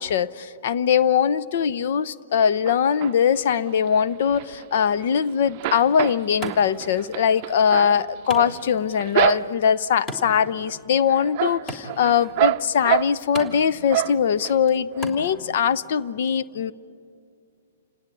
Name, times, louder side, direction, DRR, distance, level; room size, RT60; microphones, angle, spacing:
voice 1, 0.0-16.7, left 7 dB, 60° left, 15 dB, 0.7 m, -21 dB
sound 1, 2.7-3.4 3.9-5.2 5.5-9.8 10.3-10.8 11.1-13.5 13.9-14.5 14.9-15.0 15.3-15.4, right 16 dB, 40° right, 0.6 m, -27 dB
Wood, 5.6-15.6, equal, 20° left, 3.3 m, -41 dB
29.0 x 18.0 x 9.1 m, 2.4 s
hypercardioid pair, 135°, 0 cm